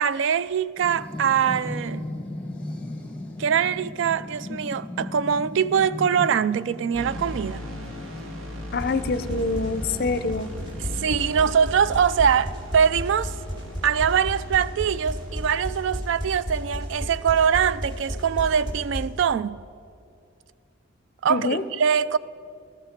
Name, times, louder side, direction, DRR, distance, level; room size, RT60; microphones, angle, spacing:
voice 1, 0.0-2.0 3.4-7.6 10.8-13.3 13.8-19.6 21.2-22.2, right 7 dB, 60° right, 0.3 m, -23 dB
sound 1, 0.8-11.2, left 1 dB, 5° left, 0.9 m, -37 dB
sound 2, 6.9-15.5, left 1 dB, 80° right, 1.6 m, -38 dB
voice 2, 8.7-10.5 21.3-21.6, left 3 dB, 45° left, 0.5 m, -25 dB
sound 3, 8.7-19.1, equal, 20° right, 2.1 m, -33 dB
13.5 x 13.0 x 5.1 m
head